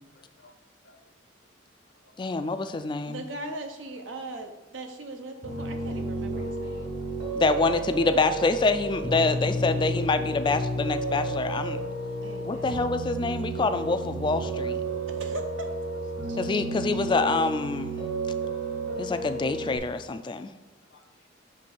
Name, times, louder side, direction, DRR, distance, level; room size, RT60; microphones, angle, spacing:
voice 1, 0.1-0.5 0.8-1.0 2.0-2.3 6.3-6.4 6.9-7.1 14.9-15.0 16.2-16.3 20.9-21.3, left 2 dB, 70° left, 4 dB, 0.8 m, -59 dB
voice 2, 2.2-3.2 7.3-11.8 12.5-14.8 16.4-17.9 19.0-20.5, left 3 dB, 25° left, 10 dB, 0.3 m, -26 dB
voice 3, 3.1-6.9 9.4-9.7 12.2-12.9 15.1-15.7 16.3-16.4, right 2 dB, 80° right, 5 dB, 0.8 m, -39 dB
Piano, 5.4-19.8, right 2 dB, 60° right, 2.1 m, -31 dB
6.6 x 3.3 x 5.4 m, 1.1 s
head